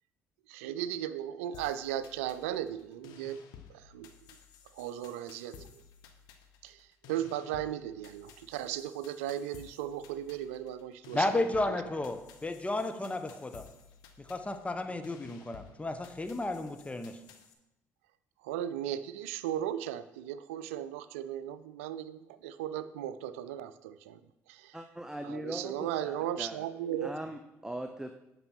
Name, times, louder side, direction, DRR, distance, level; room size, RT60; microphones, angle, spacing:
voice 1, 0.5-3.4 3.7-4.1 4.8-5.8 6.6-11.8 18.4-24.2 24.5-24.8 25.2-27.1, right 11 dB, 85° right, 14 dB, 0.4 m, -36 dB
sound 1, 1.5-17.5, left 7 dB, 75° left, 0.9 m, -55 dB
voice 2, 11.1-13.6 14.2-17.2, left 2 dB, 20° left, 7 dB, 1.0 m, -33 dB
voice 3, 24.7-26.7 27.0-28.1, right 1 dB, 10° right, 6 dB, 0.7 m, -40 dB
8.7 x 6.0 x 4.5 m, 0.91 s
hypercardioid pair, 55°, 7 cm